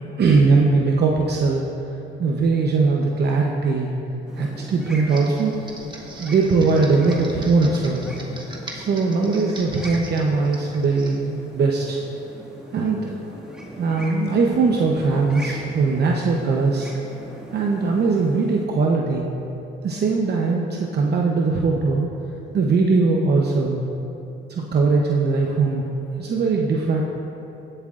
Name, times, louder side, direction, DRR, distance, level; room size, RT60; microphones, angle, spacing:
voice 1, 0.0-1.6 2.2-3.9 4.4-5.5 6.2-8.1 8.7-12.0 12.7-13.1 13.8-16.9 17.5-19.3 19.8-22.1 22.5-23.8 24.5-25.8 26.2-27.0, right 4 dB, 55° right, -1 dB, 0.8 m, -20 dB
sound 1, 4.3-18.7, right 1 dB, 5° right, 1.7 m, -39 dB
Computer keyboard, 5.1-11.2, right 2 dB, 25° right, 1.5 m, -39 dB
17.5 x 7.7 x 2.5 m, 2.9 s
cardioid pair, 90°, 20 cm